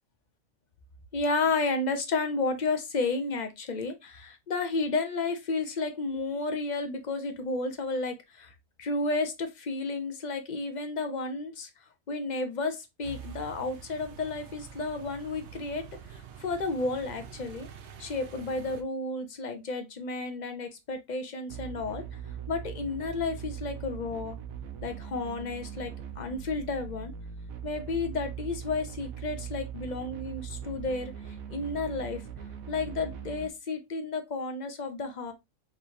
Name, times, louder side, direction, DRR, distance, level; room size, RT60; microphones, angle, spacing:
voice 1, 1.1-11.7 12.1-17.7 18.0-22.0 22.5-24.4 24.8-27.1 27.6-31.1 31.5-32.2 32.7-35.3, left 3 dB, 40° left, 0.7 m, -32 dB
sound 1, 13.0-18.8, right 7 dB, 60° right, 0.9 m, -46 dB
sound 2, 21.5-33.5, right 8 dB, 80° right, 1.2 m, -41 dB
5.0 x 3.2 x 2.7 m
omnidirectional pair, 1.5 m